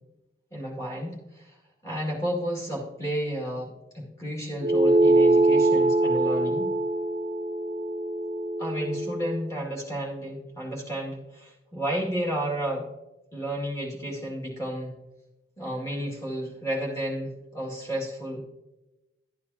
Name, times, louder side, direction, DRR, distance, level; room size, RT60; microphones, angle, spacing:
voice 1, 0.5-1.5 1.8-6.7 8.6-12.9 13.3-14.9 15.6-18.4, equal, 15° left, -3 dB, 2.2 m, -32 dB
sound 1, 4.6-9.4, right 2 dB, 30° right, 0.3 m, -23 dB
12.0 x 8.7 x 2.8 m, 0.99 s
head